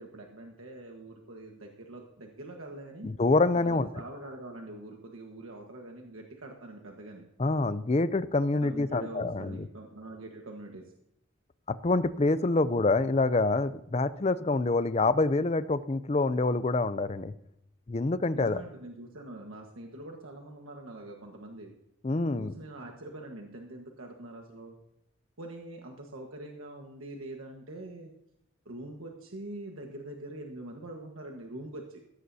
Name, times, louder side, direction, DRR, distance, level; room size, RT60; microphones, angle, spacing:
voice 1, 0.0-3.1 3.5-7.2 8.6-10.9 18.3-21.7 22.4-24.7 25.4-28.1 28.6-32.0, right 2 dB, 85° right, 2 dB, 1.5 m, -44 dB
voice 2, 3.0-3.9 7.4-9.6 11.7-17.3 17.9-18.6 22.0-22.5, left 3 dB, 30° left, 15 dB, 0.5 m, -26 dB
16.5 x 14.0 x 2.8 m, 0.81 s
head